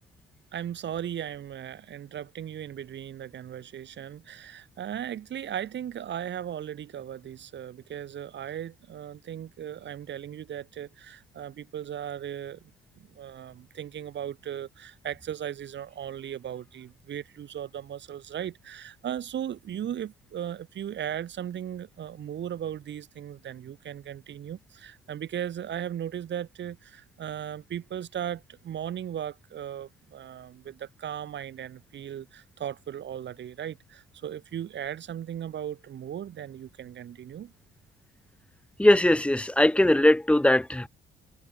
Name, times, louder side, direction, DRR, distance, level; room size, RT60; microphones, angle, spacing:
voice 1, 0.5-37.5, right 10 dB, 65° right, 7.4 m, -37 dB
voice 2, 38.8-40.9, left 1 dB, 5° left, 2.2 m, -20 dB
cardioid pair, 90°, 20 cm